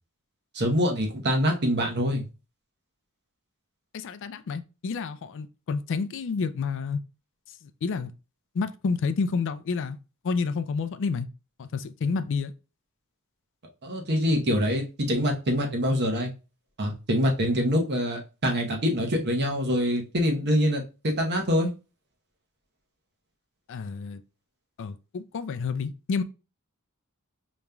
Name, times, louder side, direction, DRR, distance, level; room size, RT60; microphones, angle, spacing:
voice 1, 0.5-2.2 13.8-16.3 16.8-21.7, equal, 50° right, 0.9 m, -25 dB
voice 2, 3.9-7.0 7.6-8.1 8.5-10.0 10.2-11.3 11.6-12.5 23.7-24.2 24.8-26.2, left 5 dB, 60° left, 0.4 m, -29 dB
5.1 x 3.0 x 2.2 m
head